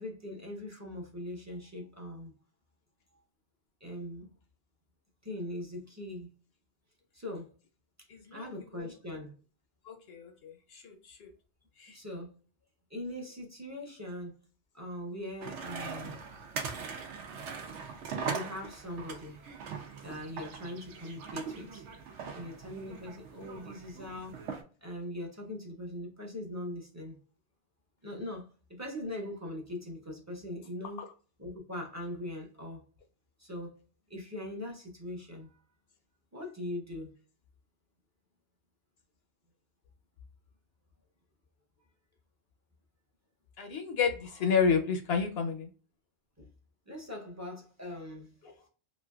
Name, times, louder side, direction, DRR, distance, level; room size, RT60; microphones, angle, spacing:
voice 1, 0.0-2.3 3.8-4.3 5.2-6.3 7.1-7.5 8.3-9.3 11.9-12.3 12.9-14.3 14.7-16.2 18.2-19.4 20.0-21.8 22.3-24.4 24.8-27.2 28.0-31.0 31.4-32.8 33.4-33.8 34.1-35.6 36.3-37.1 46.4-46.5 46.9-48.3, left 1 dB, 20° right, 0 dB, 0.6 m, -41 dB
voice 2, 8.1-8.9 9.8-11.3 11.8-12.0 31.0-31.1 43.6-45.7 48.4-48.5, left 6 dB, 65° left, 5 dB, 0.8 m, -31 dB
sound 1, 15.4-24.6, right 5 dB, 80° right, 0.9 m, -41 dB
3.1 x 2.5 x 2.3 m, 0.38 s
omnidirectional pair, 1.2 m